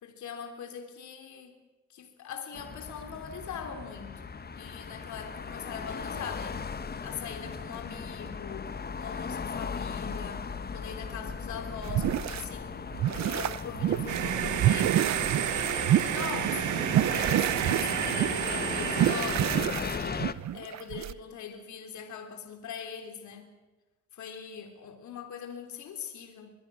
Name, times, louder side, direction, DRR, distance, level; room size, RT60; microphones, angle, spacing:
voice 1, 0.0-1.5 1.9-6.7 7.0-10.5 10.7-12.8 13.1-15.1 15.5-16.7 17.0-23.5 24.1-26.5, left 7 dB, 70° left, 6 dB, 3.4 m, -42 dB
sound 1, 2.5-20.3, left 5 dB, 30° left, 1.3 m, -37 dB
sound 2, 11.8-12.5 12.9-14.2 14.6-21.1, right 12 dB, 65° right, 0.8 m, -28 dB
sound 3, 14.1-19.6, right 11 dB, 85° right, 1.8 m, -30 dB
24.0 x 22.5 x 6.2 m, 1.1 s
cardioid pair, 90°, 30 cm